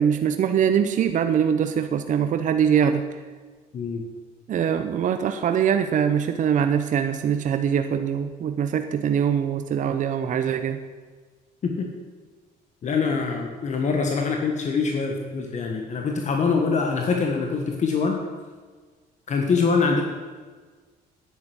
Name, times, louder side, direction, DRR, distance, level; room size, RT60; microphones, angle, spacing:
voice 1, 0.0-3.2 4.5-10.8, right 8 dB, 50° right, 8 dB, 0.8 m, -23 dB
voice 2, 12.8-18.2 19.3-20.0, left 5 dB, 45° left, 2 dB, 1.7 m, -24 dB
9.9 x 9.4 x 8.0 m, 1.5 s
cardioid pair, 110°, 17 cm